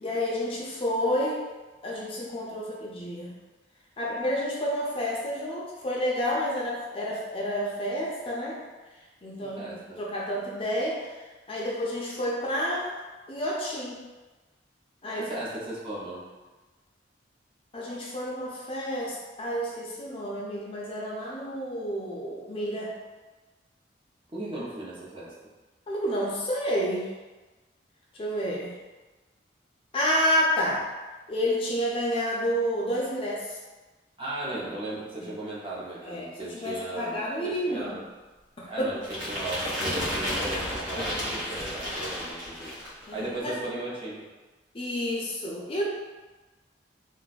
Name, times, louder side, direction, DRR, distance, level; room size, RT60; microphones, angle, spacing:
voice 1, 0.0-1.4 1.8-3.3 4.0-8.6 9.2-11.2 11.5-12.9 13.3-14.0 15.0-15.4 17.7-22.9 25.9-27.1 28.2-28.7 29.9-30.8 31.3-33.6 35.2-35.3 36.0-37.9 38.6-39.0 41.0-41.4 43.1-43.5 44.7-45.9, equal, 30° left, -4 dB, 0.5 m, -30 dB
voice 2, 9.4-10.0 15.2-16.2 24.3-25.3 34.2-38.0 38.7-42.7 43.1-44.3, right 2 dB, 30° right, -7 dB, 0.7 m, -36 dB
sound 1, 39.0-43.0, equal, 85° right, 1.1 m, -32 dB
2.5 x 2.3 x 3.9 m, 1.2 s
head